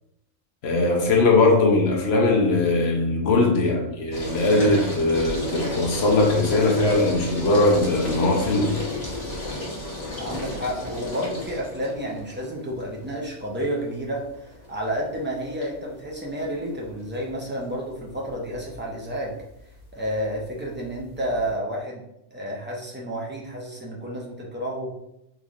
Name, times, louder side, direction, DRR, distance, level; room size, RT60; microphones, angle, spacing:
voice 1, 0.6-8.7, left 2 dB, 60° left, 0.8 m, -20 dB
sound 1, 4.1-21.5, left 1 dB, 35° left, 1.0 m, -34 dB
voice 2, 10.2-19.4 19.9-22.0 22.3-24.9, equal, 15° right, 0.3 m, -30 dB
3.8 x 3.1 x 2.4 m
omnidirectional pair, 1.3 m